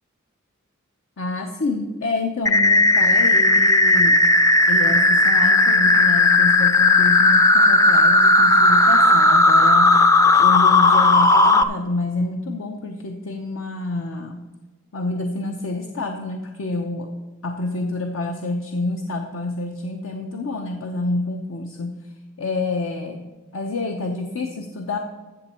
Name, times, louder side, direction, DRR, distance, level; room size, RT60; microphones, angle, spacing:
voice 1, 1.2-4.2 4.7-10.0 10.4-14.4 14.9-17.1 17.4-22.0 22.4-23.3 23.5-25.0, left 2 dB, 70° left, 4 dB, 0.8 m, -28 dB
sound 1, 2.5-11.6, left 2 dB, 15° left, 0.4 m, -15 dB
14.0 x 7.1 x 4.4 m, 1.2 s
head